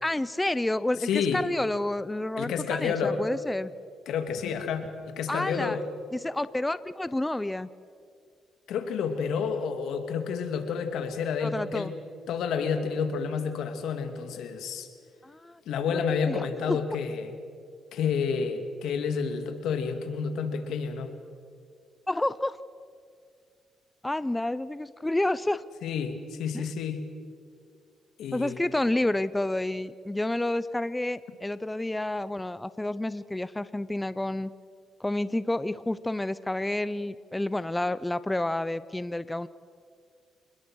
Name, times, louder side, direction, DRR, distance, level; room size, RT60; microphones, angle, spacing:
voice 1, 0.0-3.7 5.3-5.8 6.1-7.7 11.4-11.9 15.2-15.6 15.9-16.8 22.1-22.6 24.0-25.6 26.5-26.6 28.3-34.5 35.0-39.5, left 1 dB, 10° left, 15 dB, 0.6 m, -29 dB
voice 2, 1.0-1.4 2.4-3.2 4.1-5.8 8.7-12.0 12.3-14.9 15.7-17.3 17.9-21.2 25.8-27.0 28.2-28.6, left 6 dB, 80° left, 7 dB, 2.4 m, -30 dB
28.5 x 20.5 x 6.3 m, 2.2 s
cardioid pair, 90°, 0 cm